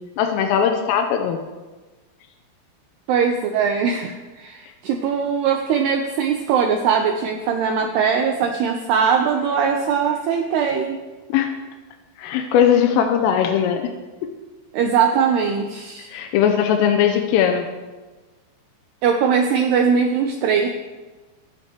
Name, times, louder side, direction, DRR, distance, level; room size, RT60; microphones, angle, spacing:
voice 1, 0.2-1.4 11.3-11.5 12.2-13.9 16.1-17.7, left 8 dB, 85° left, 5 dB, 3.4 m, -19 dB
voice 2, 3.1-11.0 14.7-16.1 19.0-20.7, right 6 dB, 90° right, 3 dB, 2.3 m, -20 dB
23.0 x 11.0 x 3.0 m, 1.2 s
omnidirectional pair, 5.8 m